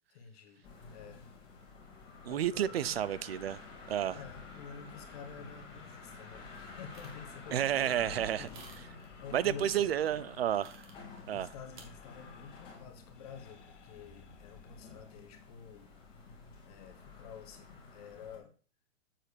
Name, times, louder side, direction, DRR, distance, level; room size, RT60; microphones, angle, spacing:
voice 1, 0.1-1.3 2.3-3.0 4.1-8.7 9.2-9.9 11.3-15.9 16.6-18.5, left 7 dB, 30° left, 1.3 m, -50 dB
sound 1, 0.6-18.4, left 4 dB, 15° left, 2.4 m, -51 dB
sound 2, 1.0-15.6, left 6 dB, 65° left, 1.9 m, -63 dB
voice 2, 2.2-3.6 3.9-4.2 7.5-8.5 9.3-10.8 11.3-11.5, right 10 dB, 55° right, 0.5 m, -31 dB
sound 3, 6.9-7.3 8.4-9.1 10.5-11.2 11.8-11.9, right 4 dB, 40° right, 2.0 m, -54 dB
7.6 x 4.4 x 6.6 m
hypercardioid pair, 170°, 38 cm